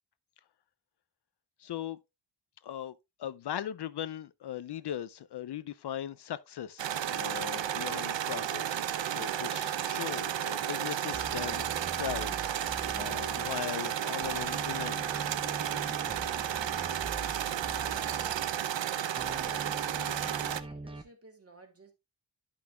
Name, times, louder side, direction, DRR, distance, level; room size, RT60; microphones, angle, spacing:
voice 1, 1.6-2.0 2.6-2.9 3.2-8.8 9.2-11.7 11.9-15.3, left 10 dB, 65° left, 0.5 m, -39 dB
sound 1, 6.8-20.6, right 10 dB, 80° right, 0.7 m, -33 dB
sound 2, 11.1-13.9 14.2-18.9 19.2-21.0, right 2 dB, 10° right, 0.8 m, -44 dB
voice 2, 19.2-21.9, right 3 dB, 30° right, 2.1 m, -52 dB
11.5 x 5.9 x 2.2 m
wide cardioid pair, 120°, 45 cm